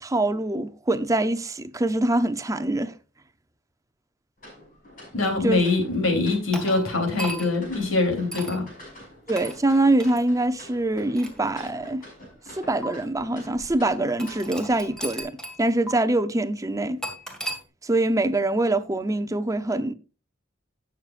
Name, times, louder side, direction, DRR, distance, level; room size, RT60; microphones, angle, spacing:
voice 1, 0.0-2.9 5.4-5.6 9.3-12.0 12.5-17.0 17.8-19.9, right 2 dB, 15° right, 0.7 m, -24 dB
sound 1, 4.4-15.2, left 1 dB, 45° left, 6.2 m, -46 dB
voice 2, 5.1-8.6, left 3 dB, 80° left, 3.3 m, -23 dB
sound 2, 6.5-7.7 8.3-8.6 9.4-9.6 10.0-10.2 10.9-12.1 12.8-12.9 14.2-15.6 15.9-16.0 17.0-17.6, right 1 dB, 5° left, 1.9 m, -35 dB
18.0 x 6.6 x 2.5 m
head